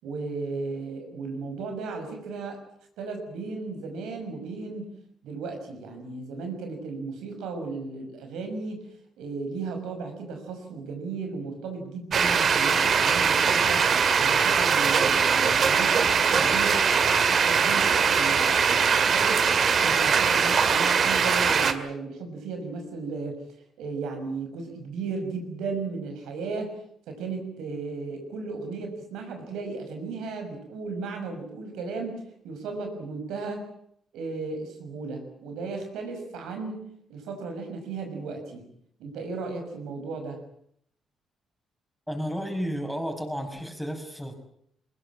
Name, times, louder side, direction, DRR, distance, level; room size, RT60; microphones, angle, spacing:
voice 1, 0.0-2.6 3.0-4.9 5.2-8.8 9.2-16.8 17.1-19.4 19.8-23.4 23.8-26.7 27.1-33.7 34.1-38.7 39.0-40.4, right 4 dB, 85° right, 4 dB, 6.2 m, -35 dB
sound 1, 12.1-21.7, right 6 dB, 50° right, 2.2 m, -21 dB
voice 2, 42.1-44.3, equal, ahead, 4 dB, 6.0 m, -32 dB
22.5 x 20.5 x 8.8 m, 0.69 s
cardioid pair, 90°, 0 cm